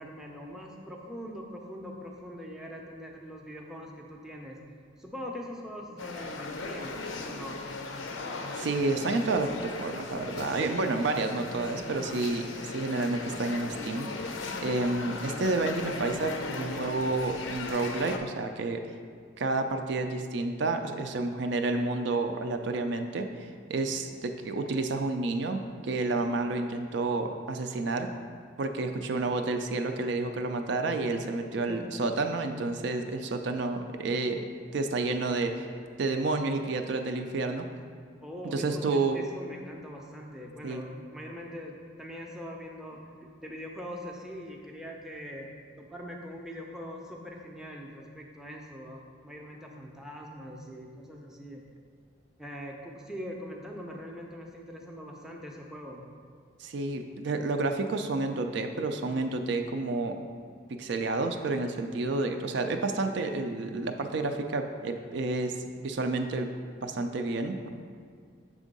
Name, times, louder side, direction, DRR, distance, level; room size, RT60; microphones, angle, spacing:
voice 1, 0.0-4.6 5.0-7.6 31.7-31.8 38.2-45.5 45.8-51.6 52.4-56.1, equal, 5° right, -1 dB, 0.5 m, -42 dB
sound 1, 6.0-18.2, left 3 dB, 75° left, 0.5 m, -37 dB
voice 2, 8.5-18.8 19.4-28.1 28.6-34.5 34.7-35.7 36.0-37.7 38.5-39.2 40.6-40.8 56.6-60.1 60.7-66.5 66.8-67.7, right 3 dB, 60° right, 5 dB, 0.4 m, -30 dB
6.9 x 3.6 x 5.2 m, 2.1 s
head